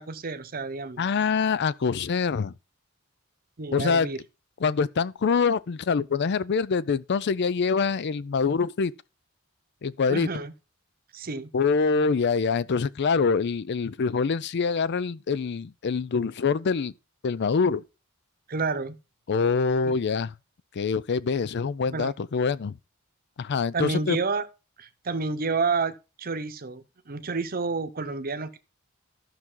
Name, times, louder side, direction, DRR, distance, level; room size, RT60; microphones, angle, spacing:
voice 1, 0.0-1.1 3.6-4.2 10.1-10.5 11.1-11.5 18.5-19.0 19.8-19.9 21.9-22.1 23.7-24.5 24.8-28.6, right 4 dB, 45° right, 0.9 m, -30 dB
voice 2, 1.0-2.5 3.7-4.1 4.6-8.9 9.8-10.3 11.5-16.9 17.2-17.8 19.3-20.3 20.8-22.7 23.4-24.2, left 5 dB, 55° left, 0.5 m, -25 dB
12.5 x 6.0 x 3.8 m
head